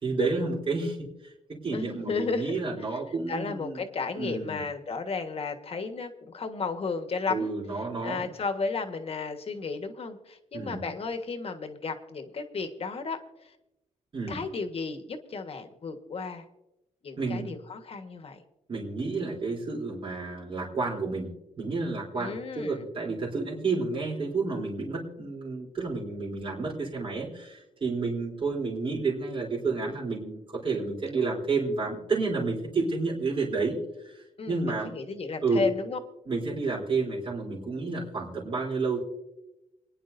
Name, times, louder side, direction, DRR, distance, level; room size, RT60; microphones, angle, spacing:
voice 1, 0.0-1.0 1.2-3.8 4.2-4.6 7.3-8.3 10.5-10.8 14.1-14.4 17.2-17.5 18.7-21.3 21.6-33.8 34.0-34.9 35.4-35.7 36.3-39.0, right 3 dB, 40° right, -5 dB, 3.4 m, -30 dB
voice 2, 1.7-2.6 3.3-7.5 8.0-13.2 14.3-16.4 17.0-18.4 22.2-22.8 34.4-36.0, left 4 dB, 45° left, 7 dB, 1.5 m, -33 dB
28.5 x 10.0 x 2.7 m, 0.93 s
cardioid pair, 90°, 14 cm